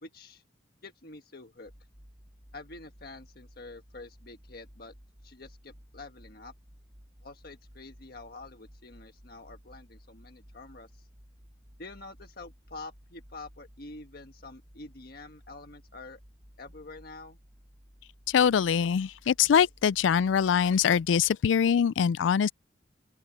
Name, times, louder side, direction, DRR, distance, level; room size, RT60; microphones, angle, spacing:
voice 1, 0.0-0.4 0.8-1.7 2.5-4.9 5.2-6.5 7.2-11.0 11.8-16.2 16.6-17.4, left 3 dB, 55° left, 1.5 m, -47 dB
sound 1, 1.6-21.3, equal, 30° right, 6.7 m, -56 dB
voice 2, 18.3-22.5, left 7 dB, 85° left, 0.4 m, -23 dB
open air
head